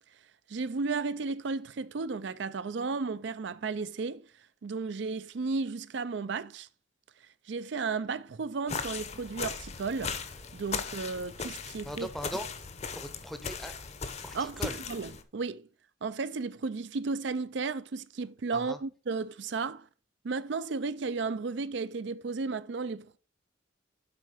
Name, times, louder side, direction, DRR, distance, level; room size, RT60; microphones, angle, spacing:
voice 1, 0.5-6.7 7.2-10.2 10.5-12.1 14.3-15.7 16.0-19.9 20.2-23.2, right 4 dB, 65° right, 0.4 m, -34 dB
sound 1, 8.7-15.2, left 5 dB, 35° left, 0.8 m, -38 dB
voice 2, 11.8-12.5 12.9-13.7 14.2-14.8 18.5-18.8, equal, ahead, 0.7 m, -39 dB
7.8 x 4.5 x 5.6 m
head